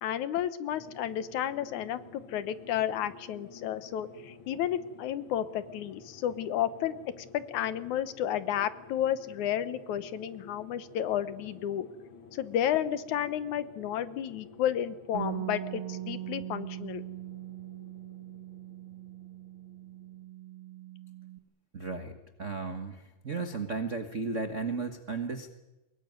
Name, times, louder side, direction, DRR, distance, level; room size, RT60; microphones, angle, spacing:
voice 1, 0.0-7.0 7.3-11.9 12.3-17.0, left 10 dB, 70° left, 13 dB, 2.3 m, -32 dB
sound 1, 0.7-20.3, left 4 dB, 45° left, 2.1 m, -53 dB
Bass guitar, 15.1-21.4, right 12 dB, 55° right, 1.7 m, -40 dB
voice 2, 21.7-25.5, right 4 dB, 80° right, 7 dB, 0.6 m, -35 dB
23.5 x 21.5 x 9.4 m, 1.0 s
omnidirectional pair, 3.8 m